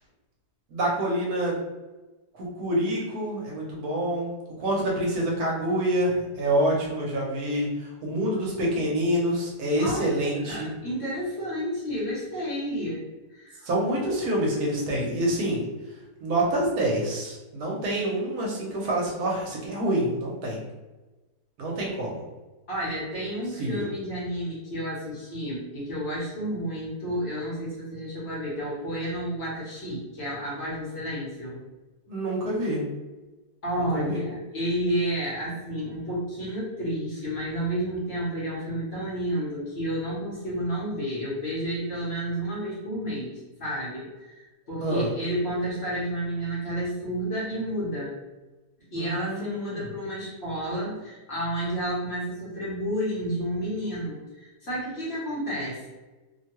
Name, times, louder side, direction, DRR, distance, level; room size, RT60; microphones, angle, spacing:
voice 1, 0.7-1.5 2.3-4.3 4.6-10.7 13.7-15.7 16.2-20.6 21.6-22.2 23.6-23.9 32.1-32.8 33.8-34.2 44.8-45.1 48.9-49.9, right 1 dB, 70° right, -3 dB, 1.2 m, -27 dB
voice 2, 9.8-10.1 10.4-13.0 13.3-13.7 22.7-31.6 33.6-48.1 48.9-55.9, equal, 50° left, -7 dB, 1.0 m, -31 dB
2.9 x 2.2 x 2.9 m, 1.1 s
omnidirectional pair, 1.7 m